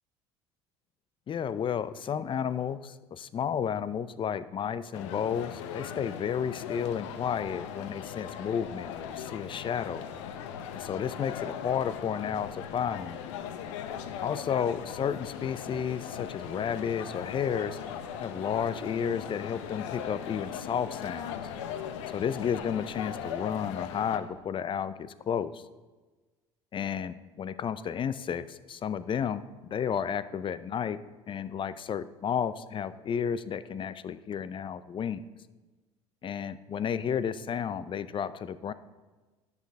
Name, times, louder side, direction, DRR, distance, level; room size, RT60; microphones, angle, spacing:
voice 1, 1.3-10.0 10.7-13.2 14.2-17.8 18.2-21.3 22.1-25.6 26.7-29.4 29.7-31.0 31.3-35.2 36.2-38.7, left 8 dB, 35° left, 15 dB, 0.5 m, -32 dB
sound 1, 4.9-24.2, left 9 dB, 75° left, 0.7 m, -39 dB
sound 2, 6.9-24.5, right 1 dB, 10° left, 3.2 m, -55 dB
sound 3, 15.2-20.0, right 2 dB, 15° right, 2.4 m, -55 dB
9.7 x 6.5 x 4.7 m, 1.2 s
hypercardioid pair, 80°, 15 cm